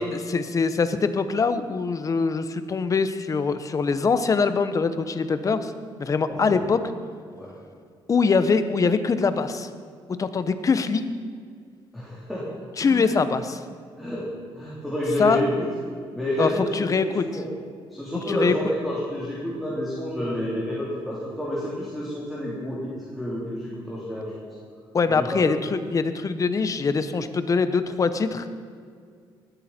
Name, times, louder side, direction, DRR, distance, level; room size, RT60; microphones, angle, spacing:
voice 1, 0.0-5.7 6.0-6.8 8.1-9.7 10.2-11.0 12.8-13.6 15.2-15.4 16.4-17.3 18.3-18.5 24.9-28.5, left 4 dB, 35° left, 10 dB, 1.0 m, -23 dB
voice 2, 11.9-13.1 14.0-14.3 14.6-15.7 16.1-17.5 17.9-24.5 25.1-25.7, left 1 dB, ahead, -7 dB, 3.8 m, -29 dB
20.0 x 13.0 x 4.5 m, 2.1 s
cardioid pair, 115°, 10 cm